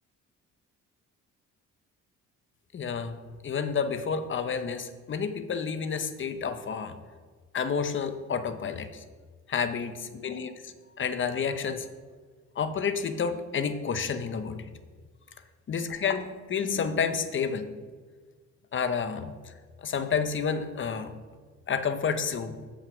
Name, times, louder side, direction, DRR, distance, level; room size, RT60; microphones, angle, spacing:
voice 1, 2.7-3.2 3.4-7.0 7.5-9.0 9.5-11.9 12.6-14.7 15.7-17.7 18.7-19.5 19.8-21.1 21.7-22.6, left 6 dB, 40° left, 10 dB, 0.8 m, -30 dB
7.5 x 5.1 x 6.1 m, 1.5 s
cardioid pair, 90°, 30 cm